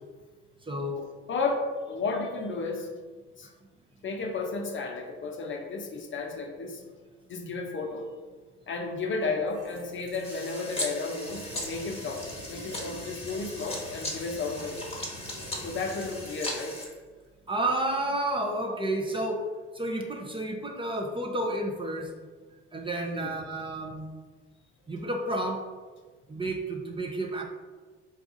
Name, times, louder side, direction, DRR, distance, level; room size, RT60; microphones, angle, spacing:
voice 1, 0.6-1.1 17.5-19.5 19.7-22.1 22.7-24.1 24.9-25.7 26.3-27.4, right 1 dB, 15° right, 0 dB, 0.6 m, -31 dB
voice 2, 1.3-2.9 3.4-3.5 4.0-6.8 7.3-8.1 8.7-14.8 15.6-16.8 23.1-23.3, left 3 dB, 40° left, 3 dB, 0.6 m, -33 dB
Trickle dribble / Fill (with liquid), 9.3-18.1, right 2 dB, 45° right, 1.1 m, -53 dB
sound 1, 10.2-16.9, left 1 dB, 20° left, 1.1 m, -38 dB
sound 2, 11.2-16.2, right 1 dB, 70° right, 1.4 m, -46 dB
4.1 x 2.3 x 3.8 m, 1.4 s
hypercardioid pair, 55°, 31 cm